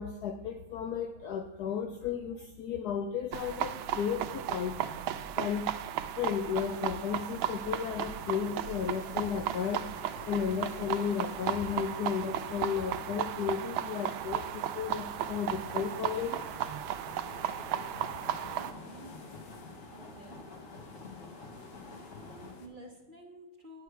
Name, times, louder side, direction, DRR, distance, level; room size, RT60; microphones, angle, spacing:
voice 1, 0.0-4.8 5.4-9.9 10.3-16.4, left 7 dB, 80° left, 6 dB, 0.8 m, -34 dB
sound 1, 3.3-18.7, right 10 dB, 75° right, 1.3 m, -35 dB
sound 2, 6.5-22.7, left 4 dB, 60° left, 1.5 m, -53 dB
sound 3, 15.6-22.5, left 3 dB, 45° left, 1.3 m, -48 dB
voice 2, 18.5-19.2 19.8-20.4 21.6-23.8, right 1 dB, 35° right, 1 dB, 0.9 m, -52 dB
9.8 x 8.1 x 4.6 m, 1.1 s
omnidirectional pair, 2.3 m